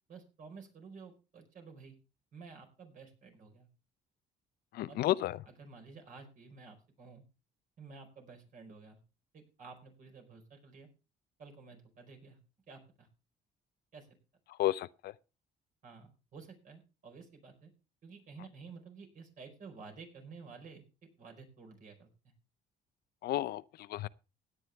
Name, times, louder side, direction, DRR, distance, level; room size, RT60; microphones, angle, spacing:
voice 1, 0.1-1.9 2.3-3.7 4.9-5.0 5.6-7.2 7.8-9.0 9.3-10.9 11.4-12.4 12.7-13.1 13.9-14.1 15.8-17.7 18.0-22.1, right 4 dB, 50° right, 4.7 m, -52 dB
voice 2, 4.7-5.4 14.6-15.1 23.2-24.1, left 14 dB, 70° left, 0.5 m, -32 dB
16.5 x 9.8 x 3.5 m
cardioid pair, 110°, 17 cm